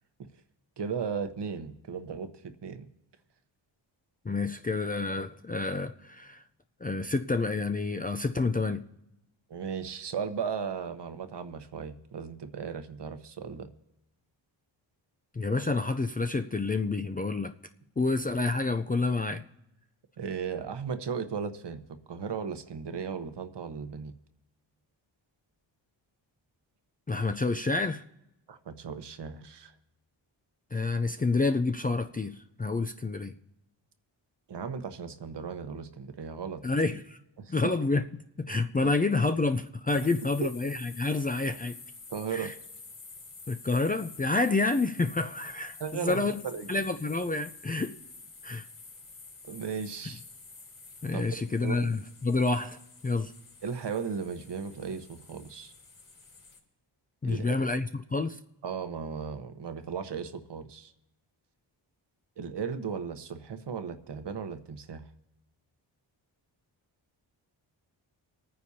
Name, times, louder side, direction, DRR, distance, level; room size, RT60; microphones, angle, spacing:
voice 1, 0.8-2.9 9.5-13.7 20.2-24.1 28.5-29.7 34.5-36.6 37.4-37.7 40.0-40.1 40.4-40.5 42.1-42.6 45.8-46.7 49.4-50.2 51.1-51.2 51.6-51.9 53.6-55.7 57.2-57.5 58.6-60.9 62.4-65.0, right 6 dB, 60° right, 1.1 m, -36 dB
voice 2, 4.2-6.4 6.8-8.9 15.3-17.5 18.0-19.4 27.1-28.0 30.7-33.3 36.6-37.2 37.5-38.1 38.4-41.8 42.3-42.5 43.5-46.4 46.7-48.0 48.4-48.7 51.0-52.8 53.0-53.3 57.2-57.8 58.1-58.4, left 3 dB, 20° left, 0.4 m, -28 dB
sound 1, 39.9-56.6, left 4 dB, 40° left, 3.3 m, -49 dB
26.5 x 9.6 x 2.8 m
cardioid pair, 65°, 48 cm